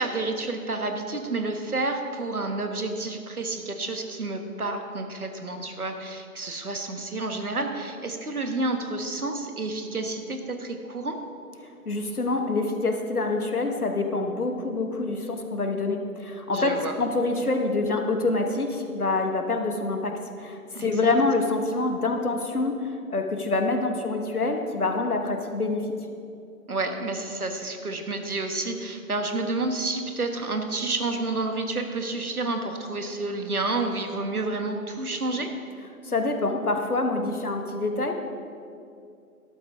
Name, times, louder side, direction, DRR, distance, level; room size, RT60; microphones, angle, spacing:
voice 1, 0.0-11.2 16.5-16.9 20.7-21.1 26.7-35.5, right 2 dB, 70° right, 5 dB, 1.5 m, -30 dB
voice 2, 11.8-25.9 36.0-38.1, left 3 dB, 75° left, 5 dB, 1.5 m, -26 dB
12.5 x 12.0 x 3.6 m, 2.5 s
figure-of-eight pair, 145°, 45 cm